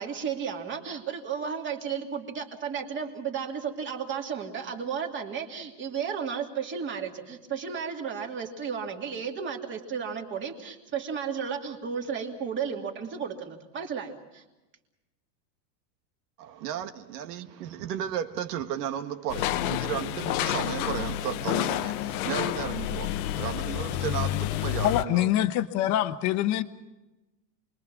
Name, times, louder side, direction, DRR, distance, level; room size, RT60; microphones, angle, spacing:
voice 1, 0.0-14.4, right 7 dB, 25° right, 2.5 m, -33 dB
voice 2, 16.4-25.3, right 10 dB, 75° right, 1.9 m, -34 dB
sound 1, 19.3-25.0, left 13 dB, 65° left, 1.0 m, -29 dB
voice 3, 24.8-26.6, left 13 dB, 35° left, 1.1 m, -25 dB
28.5 x 22.0 x 6.1 m
supercardioid pair, 160°, 49 cm